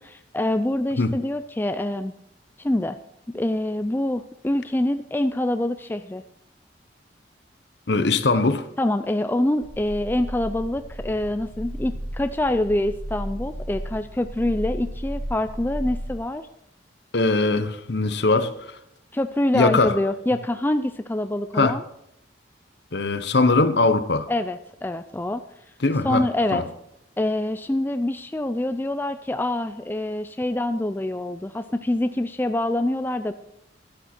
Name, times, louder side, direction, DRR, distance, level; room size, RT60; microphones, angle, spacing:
voice 1, 0.0-2.1 2.6-3.0 3.3-6.2 8.8-16.5 19.1-21.8 24.3-25.4 26.0-26.6 27.2-33.3, left 1 dB, 10° left, 0.3 m, -25 dB
voice 2, 7.9-8.7 17.1-18.8 19.5-20.0 21.5-21.8 22.9-24.3 25.8-26.6, left 3 dB, 65° left, 0.9 m, -21 dB
sound 1, 9.6-16.2, equal, 80° right, 4.2 m, -34 dB
11.5 x 11.0 x 4.4 m
head